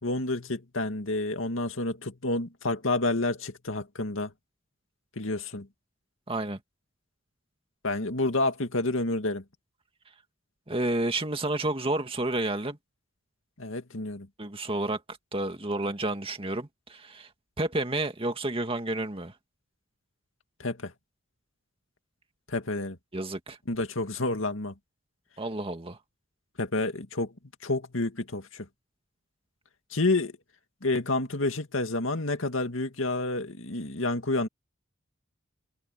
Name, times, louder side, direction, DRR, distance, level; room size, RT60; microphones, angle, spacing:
voice 1, 0.0-4.3 5.2-5.7 7.8-9.4 13.6-14.3 20.6-20.9 22.5-23.0 23.7-24.7 26.6-27.3 27.6-28.7 29.9-30.3 30.8-34.5, left 2 dB, 75° left, 2.2 m, -29 dB
voice 2, 6.3-6.6 10.7-12.8 14.4-17.3 17.6-19.3 23.1-23.6 25.4-26.0, right 2 dB, 30° right, 2.1 m, -30 dB
head